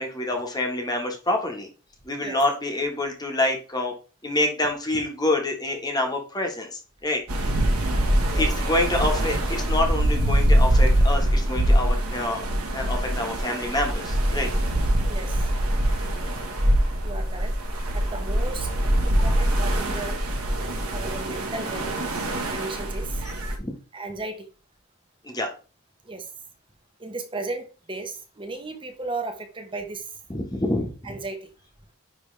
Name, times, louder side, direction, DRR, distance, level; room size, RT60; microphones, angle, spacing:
voice 1, 0.0-1.7 2.0-3.9 4.2-7.2 8.3-12.4 12.7-14.5 23.6-23.7 25.2-25.5 30.3-31.1, left 2 dB, 20° left, 2 dB, 1.4 m, -27 dB
sound 1, 7.3-23.6, right 1 dB, 85° right, 1.5 m, -23 dB
voice 2, 15.0-15.5 17.0-17.5 17.9-18.7 19.0-20.2 20.9-21.9 22.5-23.2 23.9-24.5 26.0-26.3 27.0-30.2 31.0-31.5, right 3 dB, 25° right, 5 dB, 1.1 m, -35 dB
9.9 x 3.4 x 3.3 m, 0.34 s
head